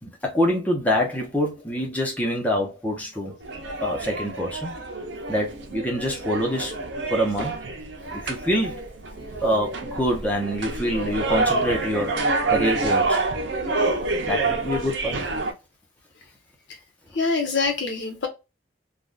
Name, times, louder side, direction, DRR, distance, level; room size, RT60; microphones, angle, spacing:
voice 1, 0.0-3.4 3.8-4.7 5.3-6.8 7.1-7.6 8.1-8.8 9.4-13.2 14.2-15.2, equal, 10° left, 0.9 m, -25 dB
sound 1, 3.4-15.5, right 3 dB, 85° right, 0.9 m, -27 dB
voice 2, 17.1-18.3, left 4 dB, 80° left, 1.2 m, -25 dB
3.6 x 2.5 x 2.5 m
head